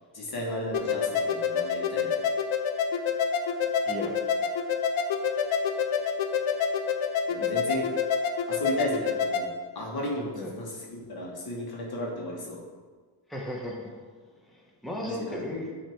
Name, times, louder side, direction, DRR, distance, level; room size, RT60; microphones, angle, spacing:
voice 1, 0.1-2.1 7.3-7.9 8.5-9.5 9.7-12.6 15.0-15.6, left 1 dB, 50° left, -2 dB, 1.6 m, -34 dB
sound 1, 0.7-9.5, left 6 dB, 80° left, 0.7 m, -27 dB
voice 2, 3.9-4.2 7.4-7.6 10.3-10.5 13.3-14.0 14.4-15.7, left 1 dB, ahead, -2 dB, 1.1 m, -36 dB
7.7 x 3.3 x 4.6 m, 1.5 s
cardioid pair, 65°, 47 cm